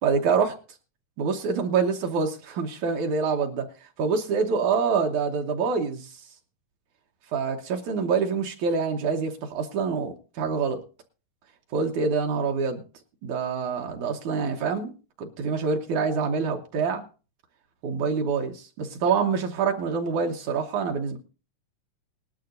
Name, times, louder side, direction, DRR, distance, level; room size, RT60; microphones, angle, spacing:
voice 1, 0.0-0.6 1.2-6.2 7.3-10.8 11.7-12.8 13.2-17.1 17.8-21.2, right 5 dB, 70° right, 3 dB, 2.3 m, -26 dB
19.5 x 11.5 x 2.6 m, 0.34 s
omnidirectional pair, 3.8 m